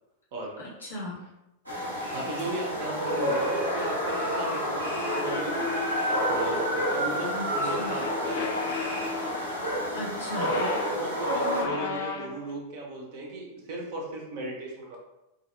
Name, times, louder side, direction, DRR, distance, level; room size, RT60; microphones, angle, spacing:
voice 1, 0.6-1.2 7.2-8.0 9.9-10.7, left 1 dB, 80° left, -7 dB, 0.8 m, -37 dB
sound 1, 1.7-11.6, equal, 85° right, 0.7 m, -29 dB
voice 2, 2.1-5.8 6.2-8.7 10.3-15.0, right 2 dB, 50° right, -1 dB, 0.6 m, -36 dB
sound 2, 5.0-6.9 7.8-9.6 10.2-12.5, left 4 dB, 55° left, 0.3 m, -35 dB
2.6 x 2.0 x 2.5 m, 0.91 s
figure-of-eight pair, 90°, 0 cm